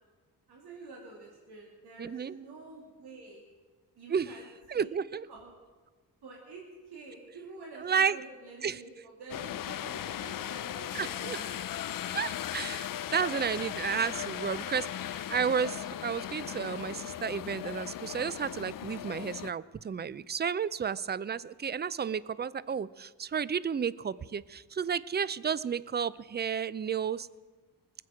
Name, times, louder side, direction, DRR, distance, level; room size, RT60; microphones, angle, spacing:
voice 1, 0.5-3.4 3.9-4.5 4.7-4.9 5.3-5.5 6.2-11.6 13.0-13.4, right 3 dB, 65° right, -2 dB, 2.5 m, -48 dB
voice 2, 2.0-2.3 4.1-4.3 4.7-5.3 7.8-8.2 8.6-8.8 10.9-11.4 12.1-27.3, right 7 dB, 25° right, 19 dB, 0.5 m, -32 dB
sound 1, 9.3-19.5, left 11 dB, 55° left, 0.5 m, -38 dB
20.5 x 7.9 x 4.9 m, 1.4 s
supercardioid pair, 55°, 41 cm